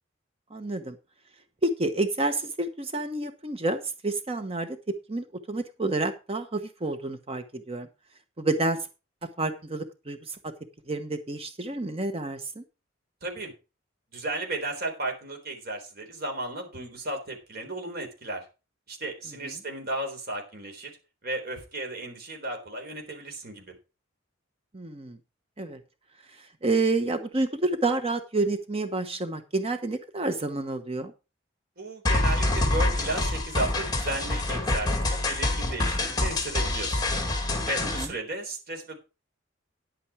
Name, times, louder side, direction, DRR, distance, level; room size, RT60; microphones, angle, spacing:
voice 1, 0.5-1.0 1.6-7.9 8.4-8.9 9.4-10.4 10.9-12.6 19.4-19.5 24.7-25.2 25.6-25.8 26.4-31.1 37.8-38.1, right 2 dB, 30° right, 8 dB, 1.0 m, -29 dB
voice 2, 13.2-13.5 14.1-18.5 18.9-20.9 21.2-23.7 31.8-37.0 37.7-39.0, right 2 dB, 50° right, 2 dB, 3.8 m, -34 dB
sound 1, 32.1-38.1, left 2 dB, 20° left, 2.1 m, -26 dB
10.0 x 8.7 x 4.8 m, 0.30 s
head